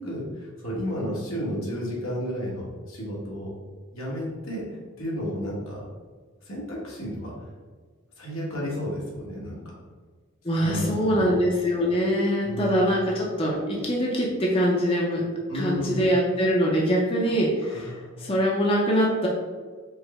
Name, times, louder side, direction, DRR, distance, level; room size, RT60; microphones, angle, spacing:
voice 1, 0.0-3.5 3.9-5.8 6.4-7.3 8.2-9.7 10.6-11.3 12.4-12.8 15.5-16.1 17.3-17.4 17.6-18.1, equal, 90° left, -5 dB, 1.5 m, -32 dB
voice 2, 10.4-15.2 15.5-17.9 18.2-19.3, equal, 25° left, -3 dB, 0.6 m, -23 dB
4.7 x 2.2 x 4.2 m, 1.5 s
head